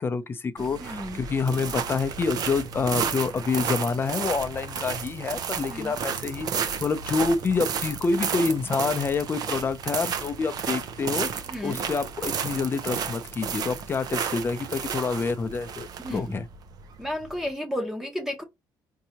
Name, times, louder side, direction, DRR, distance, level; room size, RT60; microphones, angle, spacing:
voice 1, 0.0-11.3 11.6-16.5, left 4 dB, 30° left, 0.5 m, -27 dB
sound 1, 0.6-17.5, right 7 dB, 55° right, 0.6 m, -32 dB
voice 2, 0.8-1.2 5.7-6.0 11.5-11.8 16.0-16.4 17.0-18.4, equal, 5° right, 0.8 m, -32 dB
4.5 x 2.7 x 2.8 m
cardioid pair, 135°, 8 cm